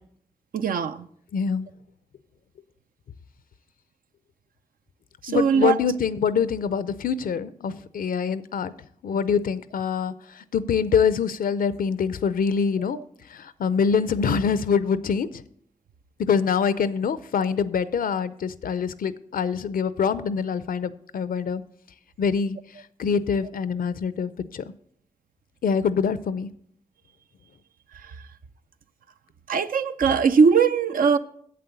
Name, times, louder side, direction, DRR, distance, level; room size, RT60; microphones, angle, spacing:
voice 1, 0.5-1.1 5.3-5.7 29.5-31.2, right 6 dB, 80° right, 0.6 m, -20 dB
voice 2, 1.3-1.7 5.3-8.7 9.0-13.0 13.3-15.4 16.2-21.6 22.2-22.6 23.0-24.6 25.6-26.5, left 6 dB, 85° left, 0.5 m, -25 dB
7.8 x 7.6 x 6.9 m
cardioid pair, 45°, 14 cm